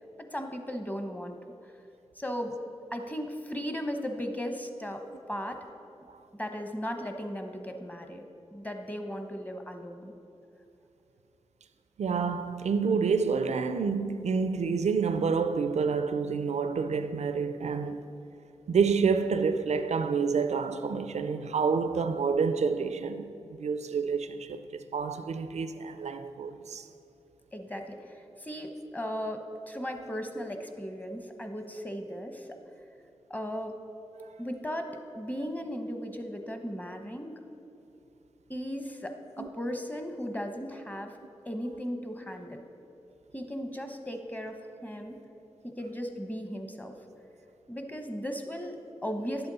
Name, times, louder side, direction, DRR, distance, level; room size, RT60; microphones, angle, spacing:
voice 1, 0.3-1.4 2.2-2.6 2.9-5.0 5.3-5.6 6.3-8.2 8.5-10.1 27.5-32.5 33.3-33.8 34.4-37.4 38.5-41.1 41.5-42.6 43.3-44.6 44.8-45.2 45.6-46.9 47.7-49.5, equal, 15° left, 1.0 m, -36 dB
voice 2, 12.0-18.1 18.7-26.9 34.2-34.3 39.4-39.5, right 5 dB, 85° right, 0.4 m, -28 dB
11.0 x 7.9 x 4.1 m
cardioid pair, 45°, 11 cm